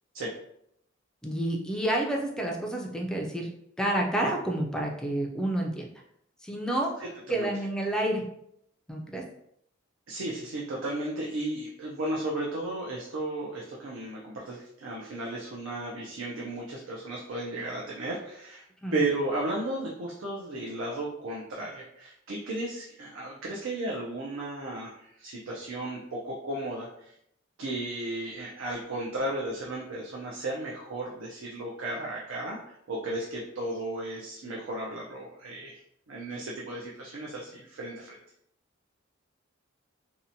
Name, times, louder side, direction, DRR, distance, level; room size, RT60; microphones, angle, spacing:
voice 1, 1.2-3.5 3.8-5.9 6.4-6.9 7.3-8.2 8.9-9.2 18.8-19.0, right 1 dB, 5° left, 0 dB, 0.3 m, -29 dB
voice 2, 10.1-18.6 18.9-27.1 27.6-35.8 36.1-38.2, right 2 dB, 90° right, -3 dB, 0.5 m, -34 dB
2.7 x 2.1 x 2.6 m, 0.74 s
head